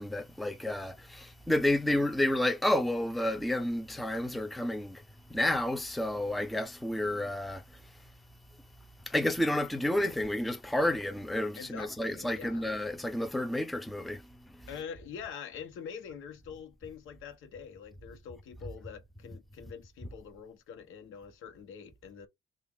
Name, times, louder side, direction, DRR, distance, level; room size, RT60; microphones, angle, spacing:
voice 1, 0.0-5.0 5.3-7.8 9.1-14.2 14.6-14.7, left 1 dB, ahead, 0.5 m, -30 dB
voice 2, 11.6-12.7 14.7-22.3, left 7 dB, 85° left, 0.9 m, -45 dB
3.4 x 2.4 x 3.5 m
cardioid pair, 90°, 20 cm